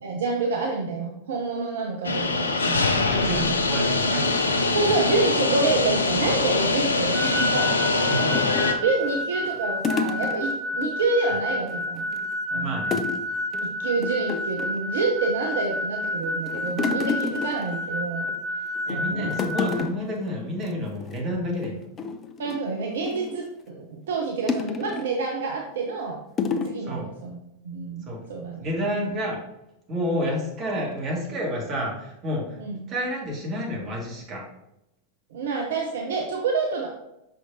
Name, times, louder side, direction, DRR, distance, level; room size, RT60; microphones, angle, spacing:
voice 1, 0.0-3.6 4.7-7.8 8.3-8.5 8.8-12.1 12.5-12.8 13.6-18.3 18.9-19.4 22.4-26.2 26.6-27.4 27.6-28.6 29.0-29.2 32.6-32.8 35.3-36.9, right 4 dB, 60° right, 1 dB, 0.7 m, -28 dB
sound 1, 2.0-8.7, left 3 dB, 75° left, 0.5 m, -23 dB
voice 2, 3.0-4.8 8.0-8.6 12.5-13.1 18.9-21.9 26.8-27.1 28.1-28.2 28.6-29.4 29.9-32.6 32.9-34.4, equal, 30° right, -2 dB, 2.0 m, -30 dB
sound 2, 7.1-19.8, left 1 dB, ahead, 1.0 m, -30 dB
sound 3, 8.3-10.9 11.2-11.4 11.7-12.3 12.9-13.2 13.5-13.7 14.0-14.8 15.4-15.9 16.2-18.4 18.7-19.0 19.3-20.2 20.5-20.7 21.0-21.2 21.6-23.4 24.5-25.2 25.7-25.9 26.4-26.8, left 5 dB, 25° left, 0.5 m, -30 dB
6.0 x 5.9 x 2.7 m, 0.86 s
figure-of-eight pair, 90°, 0 cm